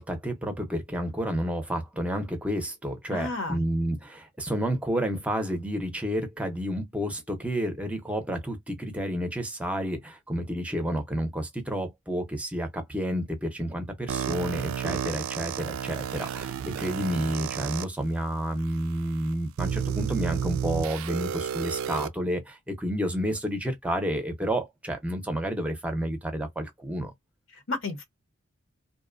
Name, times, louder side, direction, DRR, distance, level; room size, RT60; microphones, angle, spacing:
voice 1, 0.0-27.1, equal, 5° right, 0.6 m, -30 dB
voice 2, 3.1-3.6 27.5-28.0, left 3 dB, 65° left, 0.8 m, -32 dB
sound 1, 14.1-17.8 18.6-18.7 19.6-22.1, right 8 dB, 75° right, 0.3 m, -31 dB
2.6 x 2.1 x 2.4 m
head